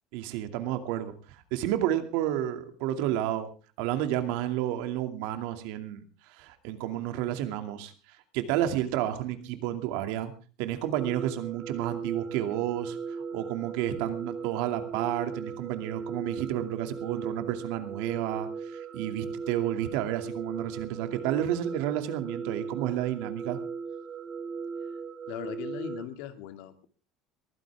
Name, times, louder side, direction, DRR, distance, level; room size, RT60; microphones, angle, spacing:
voice 1, 0.1-3.5 3.8-10.3 10.6-23.6, right 12 dB, 80° right, 7 dB, 2.4 m, -31 dB
sound 1, 11.0-26.1, right 5 dB, 40° right, 2.9 m, -38 dB
voice 2, 25.3-26.9, left 11 dB, 80° left, 8 dB, 2.3 m, -39 dB
22.0 x 15.0 x 3.6 m, 0.36 s
cardioid pair, 135°, 0 cm